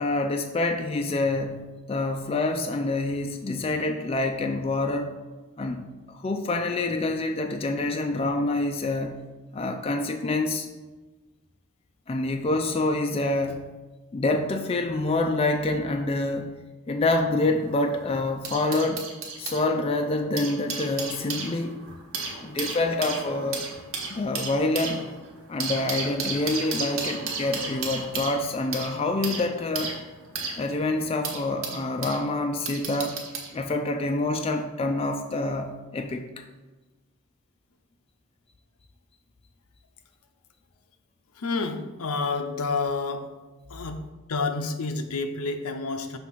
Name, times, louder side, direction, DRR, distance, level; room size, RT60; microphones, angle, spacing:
voice 1, 0.0-5.2 5.6-9.2 9.5-10.7 12.1-13.7 14.1-19.1 19.4-21.8 22.4-23.7 24.1-25.1 25.5-30.0 30.6-33.2 33.5-36.4, left 2 dB, 25° left, 5 dB, 0.3 m, -27 dB
sound 1, 17.5-19.6 20.2-32.2 32.7-33.5 34.4-34.6, right 4 dB, 65° right, 1.2 m, -34 dB
voice 2, 41.4-43.3 43.7-44.0 44.3-46.2, left 3 dB, 80° left, 7 dB, 0.6 m, -29 dB
6.2 x 3.5 x 5.6 m, 1.2 s
head